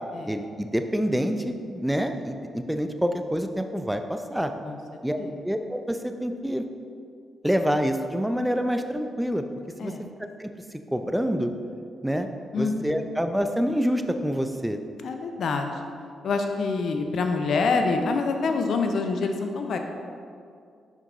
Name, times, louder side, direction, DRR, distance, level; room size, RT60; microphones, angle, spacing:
voice 1, 0.3-4.5 5.0-6.6 7.4-9.4 9.8-9.9 10.4-10.5 10.9-11.5 12.0-12.3 12.6-14.8, equal, 5° right, 7 dB, 0.6 m, -27 dB
voice 2, 9.8-10.1 12.5-13.1 15.0-15.9 16.2-19.8, left 4 dB, 65° left, 5 dB, 0.6 m, -26 dB
6.4 x 5.1 x 3.9 m, 2.3 s
hypercardioid pair, 45°, 0 cm